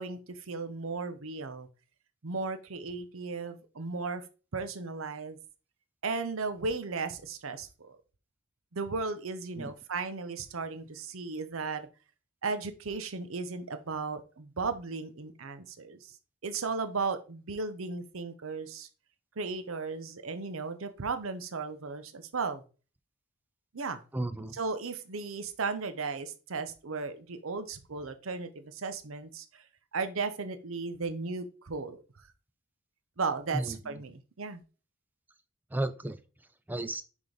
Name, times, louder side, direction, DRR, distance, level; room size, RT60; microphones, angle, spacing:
voice 1, 0.0-1.7 2.2-4.3 4.5-5.4 6.0-8.0 8.7-11.9 12.4-16.1 16.4-18.9 19.4-22.6 23.7-24.0 24.6-29.6 29.9-32.0 33.2-34.6, right 4 dB, 75° right, 10 dB, 0.7 m, -35 dB
voice 2, 24.1-24.6 33.5-34.0 35.7-37.0, right 1 dB, 10° right, 12 dB, 0.4 m, -35 dB
6.0 x 3.7 x 5.0 m, 0.35 s
head